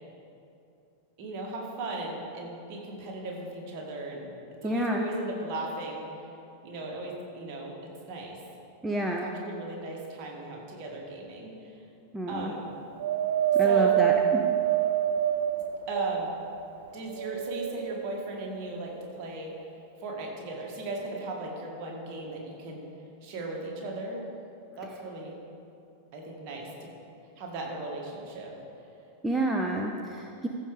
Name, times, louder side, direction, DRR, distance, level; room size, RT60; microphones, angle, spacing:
voice 1, 1.2-4.3 4.6-6.1 6.6-8.4 9.2-11.8 12.3-12.6 13.6-14.0 15.9-16.3 16.9-19.5 20.0-22.9 23.2-24.2 24.8-25.4 26.1-26.9 27.4-28.6, right 2 dB, 40° right, -1 dB, 2.0 m, -37 dB
voice 2, 4.6-5.0 8.8-9.3 12.1-12.5 13.5-14.4 29.2-30.5, right 1 dB, 5° right, 0 dB, 0.7 m, -29 dB
Wind, 13.0-16.5 17.1-18.1 18.9-19.0, right 11 dB, 60° right, 0.3 m, -26 dB
14.5 x 5.3 x 5.0 m, 2.7 s
figure-of-eight pair, 90°, 0 cm